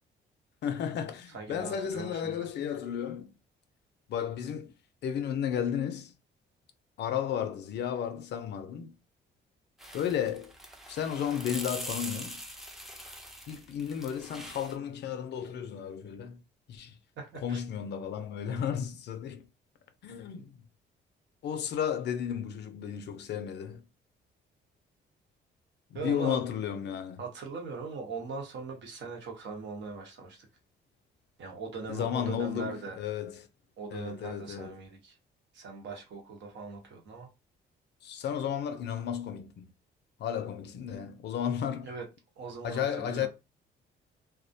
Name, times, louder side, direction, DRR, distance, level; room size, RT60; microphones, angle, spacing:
voice 1, 0.6-3.3 4.1-4.7 5.0-6.1 7.0-9.0 9.9-10.5 10.9-12.4 13.5-16.4 16.7-17.0 17.4-19.5 20.0-20.6 21.4-23.8 25.9-27.2 31.9-33.5 33.9-34.8 38.0-39.7 40.2-41.9 42.6-43.3, left 9 dB, 65° left, 0.4 m, -33 dB
voice 2, 1.3-2.5 17.2-17.6 25.9-26.4 27.2-30.5 31.4-33.0 33.8-35.2 35.5-37.3 41.8-42.0 42.4-43.3, right 4 dB, 70° right, 0.9 m, -40 dB
sound 1, 9.8-14.8, equal, ahead, 0.4 m, -43 dB
2.3 x 2.0 x 2.6 m
cardioid pair, 105°, 19 cm